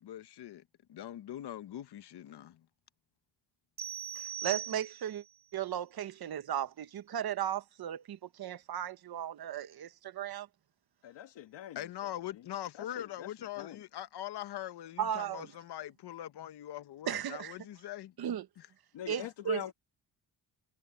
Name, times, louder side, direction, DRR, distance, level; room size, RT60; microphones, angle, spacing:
voice 1, 0.0-0.6 0.9-2.7 11.7-18.1 18.6-18.7, left 12 dB, 65° left, 1.1 m, -42 dB
sound 1, 3.8-5.3, right 9 dB, 25° right, 0.8 m, -40 dB
voice 2, 4.4-5.2 5.5-10.5 15.0-15.5 17.1-17.5 18.2-18.5 19.1-19.6, right 10 dB, 60° right, 1.3 m, -36 dB
voice 3, 11.0-11.8 12.8-13.8 18.9-19.7, left 11 dB, 85° left, 1.5 m, -43 dB
cardioid pair, 140°, 42 cm